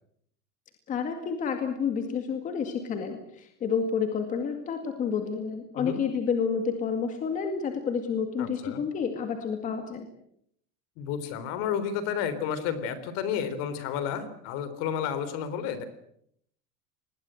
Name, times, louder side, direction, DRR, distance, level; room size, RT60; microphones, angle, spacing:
voice 1, 0.9-10.1, left 6 dB, 20° left, 6 dB, 2.2 m, -29 dB
voice 2, 8.4-8.8 11.0-15.9, left 8 dB, 45° left, 13 dB, 3.7 m, -31 dB
26.0 x 20.5 x 7.8 m, 0.70 s
cardioid pair, 180°, 35 cm